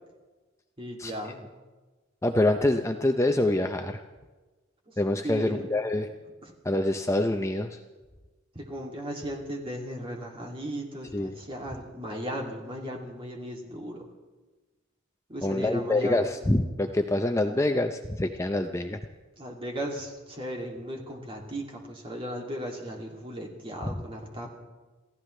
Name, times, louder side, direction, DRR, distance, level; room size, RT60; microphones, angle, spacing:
voice 1, 0.8-1.4 4.9-5.0 5.2-5.7 6.4-6.5 8.5-14.1 15.3-16.3 19.4-24.5, equal, 25° right, 0 dB, 2.6 m, -36 dB
voice 2, 2.2-4.0 5.0-6.1 6.6-7.8 11.1-11.4 15.4-19.0, left 1 dB, 15° left, 5 dB, 0.6 m, -26 dB
28.5 x 15.0 x 3.3 m, 1.2 s
head